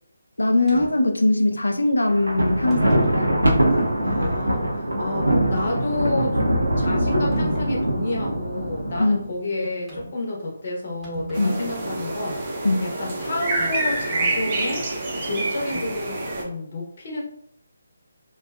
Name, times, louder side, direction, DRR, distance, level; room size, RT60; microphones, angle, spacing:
voice 1, 0.4-3.4 9.0-9.2 11.4-11.6 12.6-12.9, left 2 dB, 85° left, 4 dB, 0.4 m, -21 dB
sound 1, 0.7-0.9 1.8-2.0 2.7-3.2 3.9-4.0 7.3-7.7 9.9-10.2 10.6-10.7 10.9-12.0 13.6-13.7 15.7-16.1, right 2 dB, 5° right, 1.0 m, -38 dB
Thunder, 2.1-9.3, right 1 dB, 90° right, 0.6 m, -22 dB
voice 2, 4.0-6.4 6.8-14.9 15.2-17.2, left 2 dB, 50° left, -2 dB, 0.8 m, -30 dB
sound 2, 11.3-16.4, right 2 dB, 30° right, 0.5 m, -27 dB
2.5 x 2.3 x 2.2 m, 0.68 s
figure-of-eight pair, 150°, 0 cm